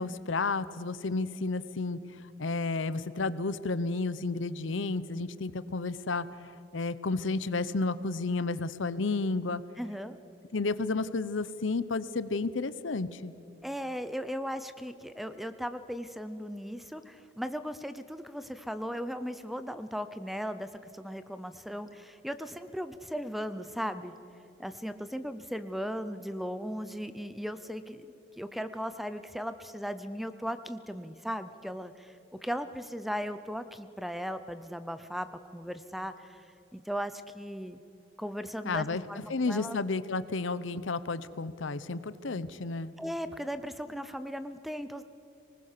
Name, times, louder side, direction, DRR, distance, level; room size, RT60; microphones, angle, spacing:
voice 1, 0.0-6.3 6.7-9.6 10.5-13.3 38.6-39.0 39.3-42.9, left 3 dB, 75° left, 15 dB, 0.8 m, -32 dB
voice 2, 9.8-10.2 13.6-24.1 24.6-28.1 28.4-32.2 32.4-35.3 35.5-36.4 36.7-37.8 38.2-39.8 43.0-45.0, equal, ahead, 11 dB, 0.6 m, -37 dB
25.5 x 20.0 x 6.7 m, 2.8 s
head